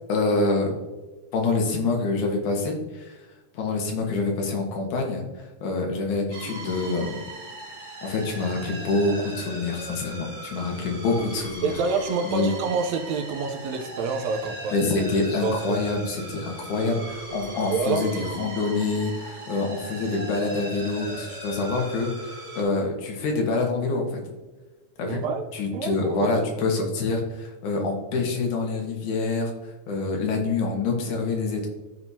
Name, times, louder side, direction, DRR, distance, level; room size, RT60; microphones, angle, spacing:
voice 1, 0.1-0.7 1.3-3.2 3.5-7.2 8.0-11.8 12.2-12.5 14.7-24.2 25.0-25.2 25.5-29.5 29.9-31.7, left 3 dB, 85° left, 1 dB, 2.8 m, -26 dB
sound 1, 6.3-22.6, right 1 dB, 45° right, 3.1 m, -39 dB
voice 2, 11.6-14.8 15.4-15.8 17.6-18.1 25.0-25.4 25.7-26.4, right 4 dB, 75° right, 4 dB, 1.9 m, -27 dB
14.0 x 4.7 x 2.8 m, 1.2 s
omnidirectional pair, 3.4 m